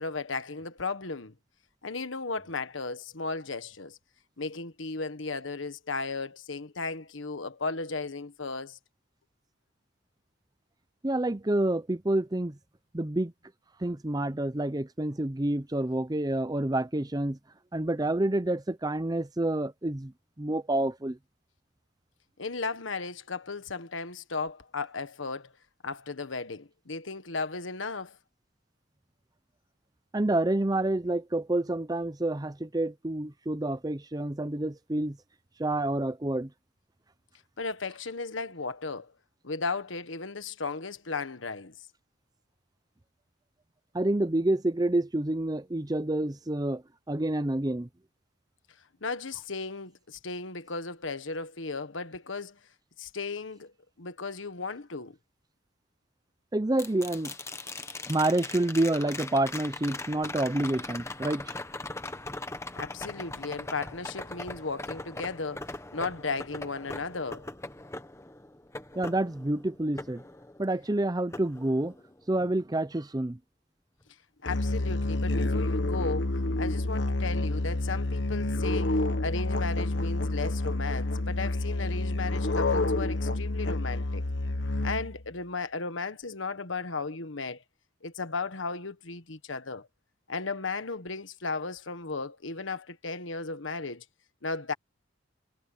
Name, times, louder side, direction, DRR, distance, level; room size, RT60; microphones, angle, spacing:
voice 1, 0.0-1.3 1.8-4.0 4.4-8.8 22.4-25.5 25.8-28.2 37.6-39.1 39.4-41.7 49.0-52.6 53.0-53.7 54.0-55.2 62.7-67.5 74.4-84.2 84.8-87.6 88.0-89.9 90.3-94.0 94.4-94.7, left 4 dB, 85° left, 1.5 m, -35 dB
voice 2, 11.0-12.6 12.9-13.3 13.8-17.4 17.7-20.1 20.4-21.2 30.1-35.2 35.6-36.5 43.9-46.8 47.1-47.9 56.5-57.3 58.1-61.5 69.0-70.2 70.6-72.0 72.3-73.4, right 1 dB, 20° right, 0.7 m, -28 dB
sound 1, 56.8-70.9 71.3-72.4 74.6-74.7, left 2 dB, 15° left, 1.3 m, -40 dB
Musical instrument, 74.5-85.3, left 2 dB, 65° left, 1.4 m, -28 dB
head